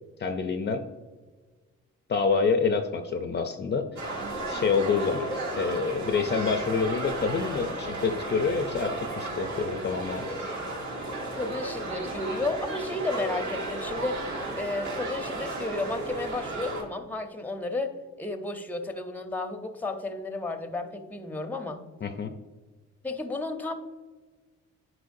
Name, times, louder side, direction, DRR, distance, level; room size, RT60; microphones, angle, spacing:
voice 1, 0.2-0.8 2.1-3.9 4.5-5.3 5.6-10.3 22.0-22.3, left 5 dB, 35° left, 7 dB, 0.5 m, -27 dB
sound 1, 4.0-16.8, right 2 dB, 65° right, 1.9 m, -34 dB
voice 2, 11.3-14.2 14.6-21.8 23.0-23.7, left 2 dB, 5° left, 7 dB, 0.7 m, -33 dB
10.5 x 4.5 x 2.6 m, 1.3 s
cardioid pair, 90°, 30 cm